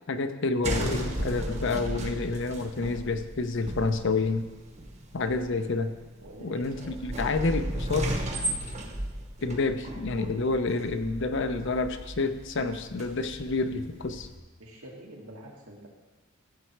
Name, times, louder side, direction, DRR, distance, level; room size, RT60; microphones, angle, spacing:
voice 1, 0.1-4.5 5.1-5.9 6.4-8.2 9.4-14.3, left 3 dB, 60° left, 9 dB, 0.7 m, -29 dB
sound 1, 0.6-14.4, right 1 dB, 35° right, 1.1 m, -36 dB
voice 2, 6.2-6.8 14.6-15.9, right 1 dB, 80° right, -2 dB, 2.3 m, -46 dB
14.5 x 6.8 x 4.6 m, 1.2 s
head